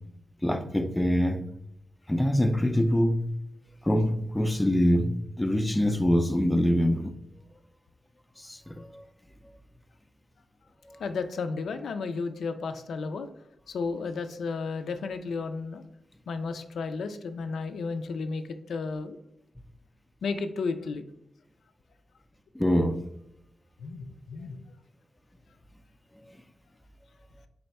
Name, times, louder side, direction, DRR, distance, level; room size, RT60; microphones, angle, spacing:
voice 1, 0.4-1.4 2.1-3.3 3.9-7.1 8.5-8.6 8.9-9.0 22.6-23.0, equal, 10° left, 0.4 m, -24 dB
voice 2, 11.0-13.3 13.7-15.8 16.3-18.4 18.7-19.2 20.2-21.1 23.8-24.6, left 4 dB, 85° left, 0.3 m, -33 dB
4.0 x 2.2 x 4.1 m
wide cardioid pair, 90°, 0 cm